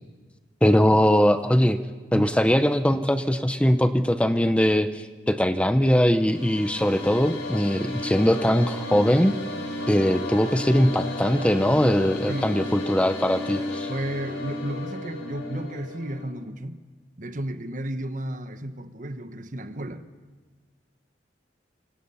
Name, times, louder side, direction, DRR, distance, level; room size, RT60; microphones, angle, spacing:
voice 1, 0.6-1.8 2.1-9.3 9.9-13.9, equal, 5° left, 0.8 m, -21 dB
sound 1, 6.0-16.2, left 1 dB, 90° left, 6.8 m, -33 dB
voice 2, 12.3-12.6 13.9-16.8 17.2-20.1, right 1 dB, 45° right, 1.2 m, -33 dB
27.0 x 26.0 x 5.7 m
head